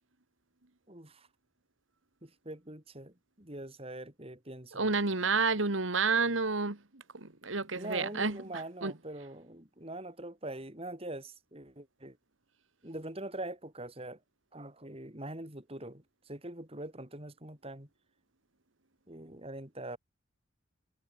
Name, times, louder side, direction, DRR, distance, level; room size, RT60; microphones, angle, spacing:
voice 1, 0.9-1.3 2.2-4.9 7.7-12.2 12.8-14.2 14.5-17.9 19.1-20.0, right 1 dB, 30° right, 4.0 m, -43 dB
voice 2, 4.8-8.4 8.8-8.9, right 4 dB, 85° right, 2.1 m, -30 dB
head